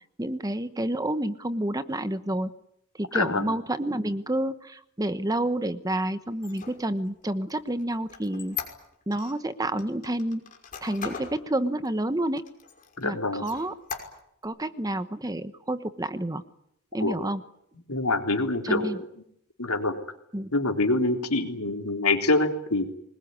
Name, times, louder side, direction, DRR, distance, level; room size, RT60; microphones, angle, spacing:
voice 1, 0.2-2.5 3.0-8.6 9.1-10.4 10.8-12.4 13.0-13.7 14.4-16.4 16.9-17.4 18.6-19.0 20.3-20.5, right 1 dB, 15° right, 12 dB, 1.1 m, -29 dB
Squeak, 6.3-9.3 9.8-11.4 11.8-11.9 12.4-13.0 13.4-14.5, left 6 dB, 40° left, 5.7 m, -39 dB
voice 2, 13.0-13.4 17.0-17.2 17.9-18.9 19.6-20.0 20.5-22.9, left 2 dB, 85° left, 5 dB, 3.7 m, -25 dB
23.5 x 21.0 x 9.7 m, 0.74 s
head